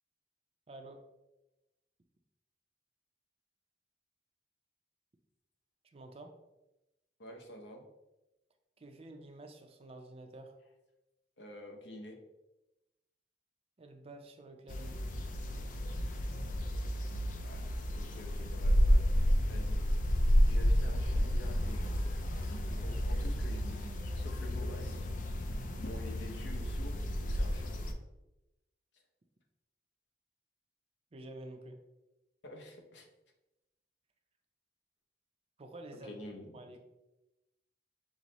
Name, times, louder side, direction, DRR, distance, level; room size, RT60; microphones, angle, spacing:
voice 1, 0.7-1.0 5.9-6.3 8.8-10.5 13.8-15.0 22.9-23.0 31.1-31.8 35.6-36.1 36.5-36.8, right 2 dB, 35° right, 5 dB, 0.5 m, -49 dB
voice 2, 7.2-7.8 11.4-12.2 17.4-17.6 17.9-19.1 19.5-19.8 20.5-21.9 22.6-23.8 24.1-25.1 25.8-27.7 32.4-33.1 36.0-36.5, left 1 dB, 80° left, 2 dB, 0.8 m, -48 dB
sound 1, 14.7-27.9, equal, 50° left, 0.4 m, -31 dB
6.1 x 2.1 x 4.0 m, 0.96 s
head